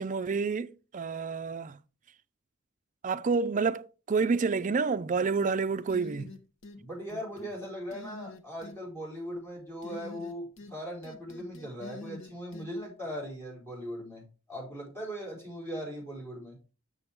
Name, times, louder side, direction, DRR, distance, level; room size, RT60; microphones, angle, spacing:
voice 1, 0.0-1.8 3.0-6.3, right 4 dB, 40° right, 0.4 m, -29 dB
sound 1, 5.9-6.8 7.1-7.5 7.9-8.8 9.8-10.8 11.0-12.7, left 3 dB, 65° left, 1.0 m, -46 dB
voice 2, 6.7-16.6, equal, 10° left, 4.4 m, -39 dB
6.9 x 6.9 x 3.5 m
head